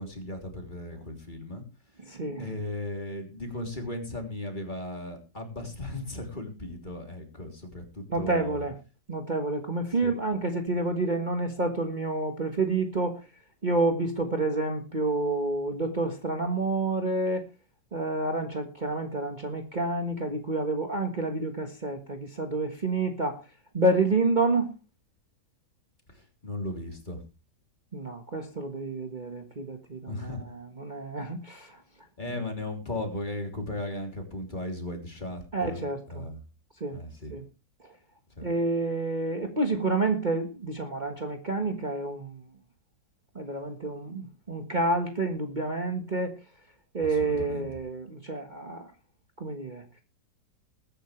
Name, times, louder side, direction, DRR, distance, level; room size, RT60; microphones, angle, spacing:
voice 1, 0.0-1.6 2.4-8.6 10.0-10.1 26.1-27.2 30.1-30.5 32.2-35.8 36.1-36.4 36.9-37.3 38.3-38.5 47.0-47.7, left 1 dB, 25° left, 3 dB, 3.3 m, -36 dB
voice 2, 2.0-2.5 8.1-8.8 9.1-13.2 13.6-17.5 17.9-23.4 23.7-24.7 27.9-31.8 35.5-36.3 36.8-37.0 37.3-37.4 37.8-37.9 38.4-42.4 43.3-46.4 46.9-48.9 49.4-50.0, right 2 dB, 25° right, 4 dB, 1.6 m, -29 dB
21.0 x 9.8 x 3.3 m, 0.31 s
omnidirectional pair, 1.8 m